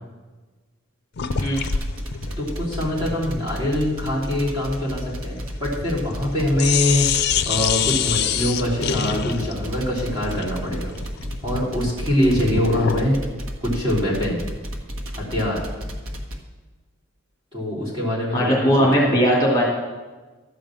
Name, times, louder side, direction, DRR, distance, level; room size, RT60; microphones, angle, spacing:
sound 1, 1.2-6.3 6.6-13.1, left 7 dB, 55° left, 0.5 m, -27 dB
sound 2, 1.2-16.4, equal, 90° right, 1.3 m, -32 dB
voice 1, 2.4-11.0 11.4-13.2 13.6-14.4 15.1-15.7 17.5-19.1, left 1 dB, 25° right, -7 dB, 3.5 m, -24 dB
voice 2, 18.3-19.6, equal, 20° left, -4 dB, 2.6 m, -18 dB
12.5 x 5.2 x 7.6 m, 1.3 s
head